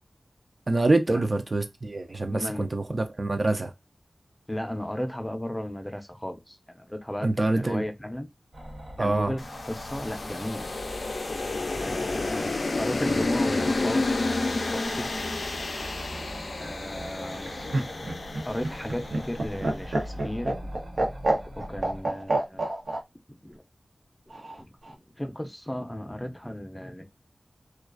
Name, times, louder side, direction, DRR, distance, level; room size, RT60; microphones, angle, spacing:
voice 1, 0.7-3.7 7.2-7.8 9.0-9.3, right 2 dB, 50° right, 0.4 m, -25 dB
voice 2, 2.3-2.7 4.5-8.3 9.0-10.7 11.7-15.1 16.6-17.5 18.5-20.7 21.3-22.7 23.4-23.6 24.6-27.1, left 1 dB, 15° left, 0.5 m, -35 dB
sound 1, 8.5-22.0, right 1 dB, 70° right, 1.1 m, -41 dB
sound 2, 9.4-19.7, left 3 dB, 75° left, 0.3 m, -30 dB
Laughter, 17.3-23.0 24.3-24.9, right 2 dB, 85° right, 0.7 m, -28 dB
2.3 x 2.3 x 2.4 m
wide cardioid pair, 50°, 0 cm